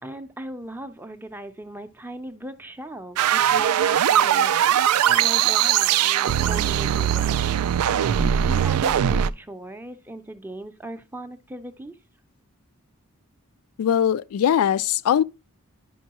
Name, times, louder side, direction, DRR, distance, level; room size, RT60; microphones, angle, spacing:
voice 1, 0.0-4.5 5.1-7.5 8.2-12.0, right 1 dB, 10° right, 0.5 m, -38 dB
sound 1, 3.2-9.3, right 9 dB, 90° right, 0.3 m, -20 dB
voice 2, 13.8-15.2, left 9 dB, 80° left, 0.3 m, -21 dB
10.0 x 5.3 x 2.9 m
head